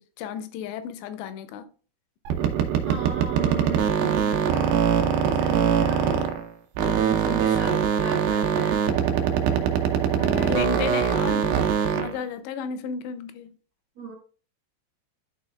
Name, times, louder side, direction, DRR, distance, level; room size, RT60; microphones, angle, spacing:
voice 1, 0.0-1.7 7.5-7.8 10.1-13.5, left 7 dB, 85° left, 2.8 m, -34 dB
sound 1, 2.3-6.5 6.8-12.2, right 8 dB, 80° right, 2.1 m, -22 dB
voice 2, 2.8-4.9 5.3-6.2 6.9-8.8 13.9-14.1, right 4 dB, 50° right, 1.8 m, -36 dB
11.5 x 4.7 x 2.2 m
omnidirectional pair, 5.1 m